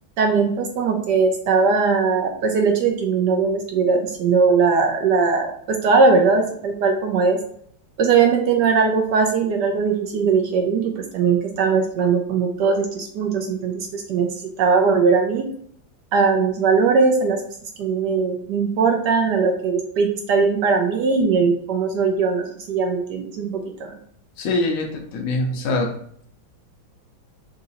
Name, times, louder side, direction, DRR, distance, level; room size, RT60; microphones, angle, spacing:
voice 1, 0.2-7.4 8.0-14.3 14.6-15.5 16.1-17.4 17.8-23.9, right 5 dB, 70° right, 3 dB, 1.0 m, -20 dB
voice 2, 24.4-25.9, left 2 dB, 75° left, 2 dB, 0.7 m, -23 dB
3.8 x 2.7 x 4.1 m, 0.65 s
omnidirectional pair, 2.2 m